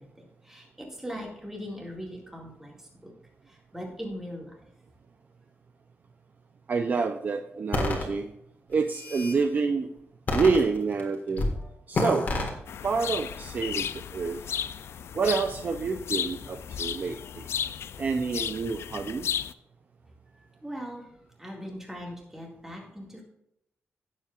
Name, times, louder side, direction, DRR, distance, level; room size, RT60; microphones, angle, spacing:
voice 1, 0.0-3.1 3.5-4.6 20.3-23.2, equal, 10° right, -1 dB, 2.2 m, -40 dB
voice 2, 6.7-8.3 8.7-9.9 10.3-11.5 11.9-12.3 12.8-13.9 14.1-14.4 15.2-17.5 18.0-19.3, right 4 dB, 40° right, 6 dB, 0.5 m, -27 dB
sound 1, 7.7-8.0 8.7-9.4 10.3-11.0 11.4-11.6 11.9-12.5, left 2 dB, 40° left, 1.8 m, -28 dB
sound 2, 12.7-19.5, left 8 dB, 70° left, 0.4 m, -34 dB
16.5 x 7.4 x 2.5 m, 0.77 s
wide cardioid pair, 175°, 4 cm